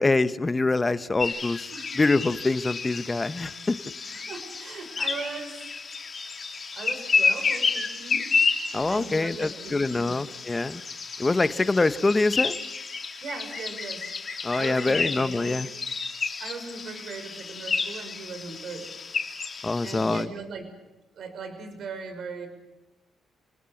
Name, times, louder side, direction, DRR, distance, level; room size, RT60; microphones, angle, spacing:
voice 1, 0.0-3.8 8.7-10.8 11.2-12.6 14.4-15.7 19.6-20.3, left 3 dB, 20° left, 13 dB, 1.1 m, -25 dB
sound 1, 1.2-20.2, left 4 dB, 40° left, 3.4 m, -31 dB
voice 2, 4.1-5.6 6.8-8.3 8.9-10.2 13.2-14.1 14.5-15.6 16.4-18.9 19.8-20.7 21.1-22.5, right 4 dB, 60° right, 7 dB, 6.0 m, -38 dB
29.5 x 19.5 x 7.3 m, 0.96 s
cardioid pair, 90°, 0 cm